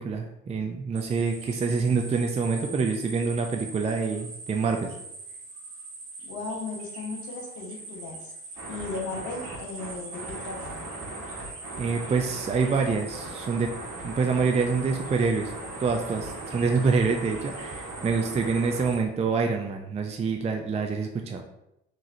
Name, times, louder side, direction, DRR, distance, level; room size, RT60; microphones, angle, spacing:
voice 1, 0.0-4.9 11.8-13.7 14.0-15.5 15.8-21.4, right 4 dB, 20° right, 3 dB, 0.4 m, -26 dB
sound 1, 0.9-19.0, right 3 dB, 45° right, 1.1 m, -43 dB
voice 2, 6.2-8.3 8.7-10.8, left 3 dB, 65° left, 1 dB, 0.9 m, -36 dB
sound 2, 8.6-18.9, right 2 dB, 70° right, 1.4 m, -39 dB
3.8 x 3.1 x 2.7 m, 0.84 s
hypercardioid pair, 55°, 31 cm